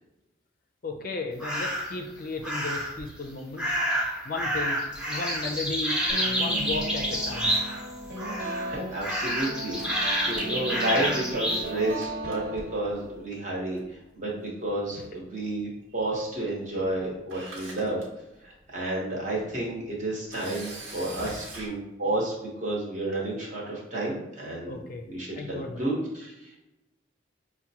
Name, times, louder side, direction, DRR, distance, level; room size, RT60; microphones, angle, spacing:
voice 1, 0.8-3.8 4.2-4.8 5.0-7.6 15.0-15.1 19.5-19.6 21.1-21.3 24.7-25.0 25.3-25.8, left 3 dB, 45° left, 3 dB, 0.4 m, -35 dB
sound 1, 1.4-2.0 2.4-3.0 3.6-7.9 8.2-8.7 9.0-11.7, equal, 5° right, 0.6 m, -29 dB
sound 2, 6.1-13.2, right 1 dB, 55° right, 1.4 m, -36 dB
voice 2, 8.3-9.8 10.2-18.0 18.4-24.8 25.1-26.6, right 1 dB, 40° right, -4 dB, 1.1 m, -31 dB
Camera, 9.7-11.3 11.6-11.7 12.0-12.9 13.8-14.0 14.3-14.4 16.9-17.0 17.3-18.0 18.6-18.8 20.3-21.7, right 2 dB, 85° right, 1.0 m, -42 dB
5.8 x 2.1 x 2.8 m, 0.94 s
head